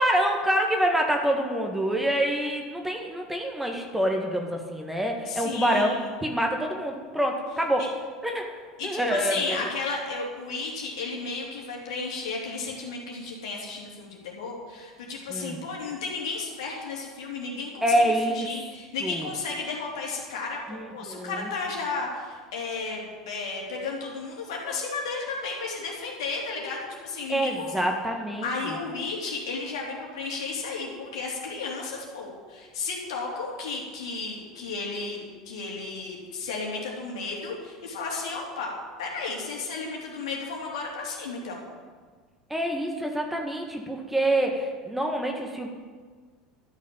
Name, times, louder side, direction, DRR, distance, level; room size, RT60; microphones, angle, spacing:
voice 1, 0.0-7.9 8.2-8.5 8.8-9.6 15.3-15.6 17.8-18.5 19.0-19.3 20.7-21.5 27.3-28.5 42.5-45.7, right 1 dB, 5° right, 2 dB, 1.9 m, -26 dB
voice 2, 5.3-6.1 7.8-7.9 8.8-27.8 28.4-38.7 39.0-41.6, left 4 dB, 65° left, -2 dB, 3.2 m, -33 dB
13.0 x 6.3 x 8.8 m, 1.5 s
figure-of-eight pair, 70°, 3 cm